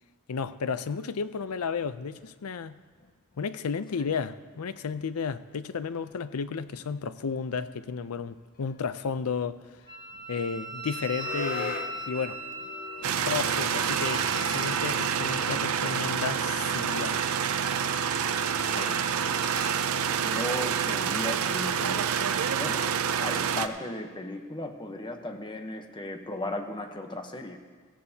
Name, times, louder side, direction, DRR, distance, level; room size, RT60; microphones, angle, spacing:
voice 1, 0.3-2.8 3.4-9.6 10.3-11.8 12.1-12.4 13.2-17.2, left 5 dB, 80° left, 0.5 m, -33 dB
sound 1, 1.4-2.3 2.6-3.4 3.7-3.9 4.1-4.2 4.5-13.1, left 5 dB, 40° left, 0.6 m, -43 dB
Wind instrument woodwind instrument, 9.9-19.8, right 2 dB, 20° right, 1.0 m, -39 dB
sound 2, 13.0-23.7, right 7 dB, 70° right, 0.5 m, -28 dB
voice 2, 18.6-19.0 20.2-22.0 22.6-22.9 23.2-27.6, left 1 dB, 20° left, 0.9 m, -36 dB
17.5 x 15.0 x 2.8 m
head